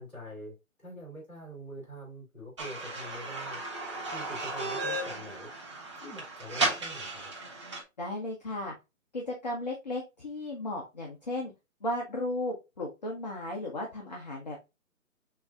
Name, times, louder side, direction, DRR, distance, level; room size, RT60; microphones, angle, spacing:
voice 1, 0.0-3.6 4.1-5.5 6.0-7.3, equal, 5° left, -12 dB, 2.5 m, -45 dB
sound 1, 2.6-7.8, right 2 dB, 20° right, 0.8 m, -34 dB
voice 2, 8.0-8.7 9.1-11.5 11.8-14.6, left 1 dB, 30° left, 0 dB, 0.7 m, -35 dB
6.4 x 2.8 x 2.4 m, 0.25 s
figure-of-eight pair, 150°, 41 cm